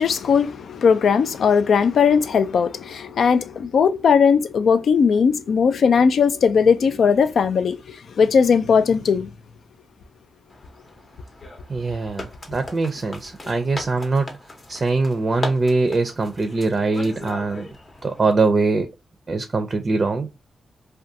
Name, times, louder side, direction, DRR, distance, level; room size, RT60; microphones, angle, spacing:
voice 1, 0.0-9.3, left 6 dB, 75° left, 0.3 m, -18 dB
sound 1, 10.5-18.3, left 2 dB, 40° left, 0.7 m, -38 dB
voice 2, 11.7-14.3 14.7-17.7 18.0-18.9 19.3-20.4, right 3 dB, 40° right, 0.4 m, -22 dB
2.4 x 2.2 x 2.6 m
cardioid pair, 75°, 0 cm